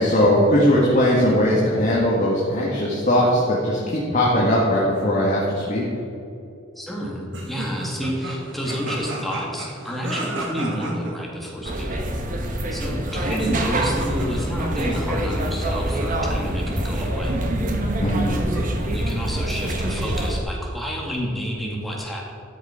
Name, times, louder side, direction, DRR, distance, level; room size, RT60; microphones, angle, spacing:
voice 1, 0.0-5.8 18.0-18.5, equal, 40° left, -5 dB, 1.8 m, -19 dB
voice 2, 6.8-12.1 12.7-17.4 18.7-22.2, equal, ahead, -3 dB, 1.9 m, -29 dB
sound 1, 7.3-11.1 13.0-14.5 17.3-18.8, right 1 dB, 70° right, 1.9 m, -32 dB
sound 2, 11.6-20.4, right 1 dB, 45° right, 1.1 m, -25 dB
12.5 x 6.6 x 5.0 m, 2.6 s
head